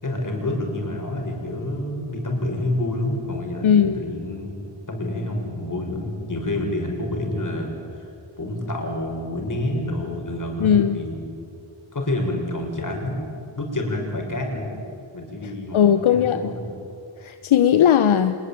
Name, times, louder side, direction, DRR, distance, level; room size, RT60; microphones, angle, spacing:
voice 1, 0.0-7.7 8.0-8.1 8.4-11.3 11.9-14.8 15.1-16.7, left 1 dB, 40° left, 2 dB, 6.6 m, -28 dB
voice 2, 3.6-4.0 10.6-11.0 15.7-16.5 17.2-18.4, left 9 dB, 75° left, 10 dB, 1.0 m, -17 dB
25.5 x 21.5 x 8.9 m, 2.5 s
cardioid pair, 70°, 48 cm